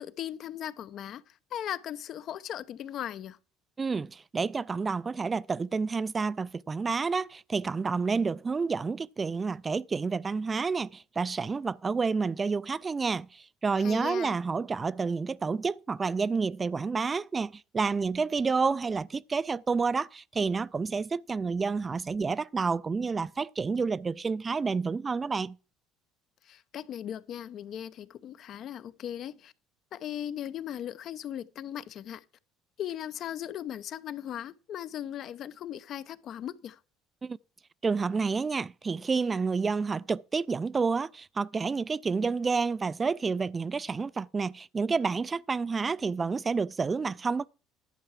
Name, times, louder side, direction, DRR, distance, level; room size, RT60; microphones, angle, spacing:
voice 1, 0.0-3.4 13.8-14.3 26.4-29.5 29.9-32.2 32.8-36.8, left 10 dB, 60° left, 0.7 m, -38 dB
voice 2, 3.8-25.6 37.2-37.4 37.8-47.5, right 4 dB, 30° right, 0.4 m, -29 dB
11.0 x 4.6 x 7.4 m
supercardioid pair, 80°, 0 cm